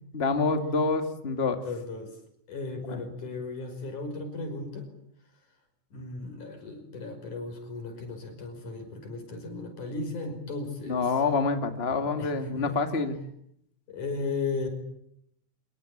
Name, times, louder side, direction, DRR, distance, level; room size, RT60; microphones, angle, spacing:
voice 1, 0.1-1.6 2.9-3.0 10.9-13.2, left 4 dB, 20° left, 7 dB, 2.0 m, -27 dB
voice 2, 1.6-2.1 2.5-4.9 5.9-11.1 12.0-12.8 13.9-14.7, left 3 dB, 75° left, 6 dB, 6.9 m, -36 dB
26.0 x 23.5 x 8.8 m, 0.74 s
omnidirectional pair, 3.5 m